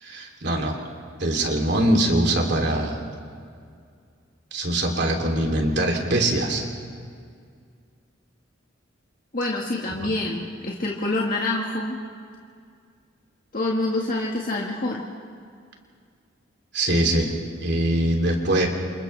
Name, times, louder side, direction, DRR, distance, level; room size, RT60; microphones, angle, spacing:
voice 1, 0.0-0.7 1.2-3.0 4.5-6.6 10.0-10.1 16.7-17.3 17.6-18.7, right 1 dB, 60° right, 1 dB, 3.2 m, -22 dB
voice 2, 9.3-12.0 13.5-15.1, left 2 dB, 45° left, -2 dB, 1.7 m, -26 dB
29.5 x 27.0 x 3.4 m, 2.2 s
head